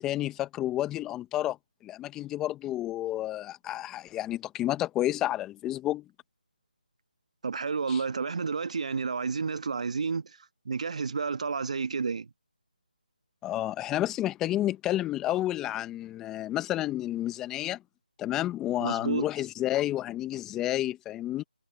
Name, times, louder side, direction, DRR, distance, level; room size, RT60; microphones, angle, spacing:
voice 1, 0.0-1.6 1.8-6.1 7.9-8.0 13.4-17.8 18.2-21.4, left 14 dB, 10° left, 1.4 m, -30 dB
voice 2, 7.4-10.4 10.6-12.3 18.8-19.3, right 5 dB, 45° right, 1.6 m, -30 dB
figure-of-eight pair, 160°, 5 cm